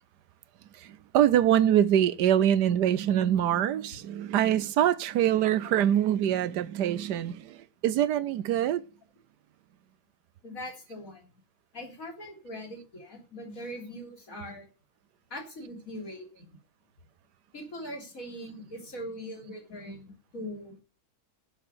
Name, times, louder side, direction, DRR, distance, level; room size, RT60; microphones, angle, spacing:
voice 1, 0.7-8.8, right 10 dB, 85° right, 1.4 m, -24 dB
voice 2, 10.4-11.3 11.7-14.7 15.3-16.4 17.5-20.7, equal, 55° left, 3.7 m, -41 dB
12.0 x 6.9 x 6.4 m
omnidirectional pair, 1.7 m